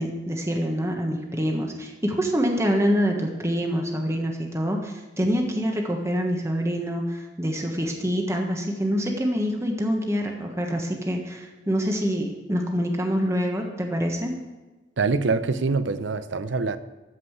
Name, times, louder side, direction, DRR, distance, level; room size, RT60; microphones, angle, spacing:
voice 1, 0.0-14.4, equal, 15° right, 2 dB, 1.3 m, -26 dB
voice 2, 15.0-16.8, right 4 dB, 70° right, 13 dB, 0.6 m, -24 dB
13.5 x 5.5 x 8.0 m, 1.2 s
head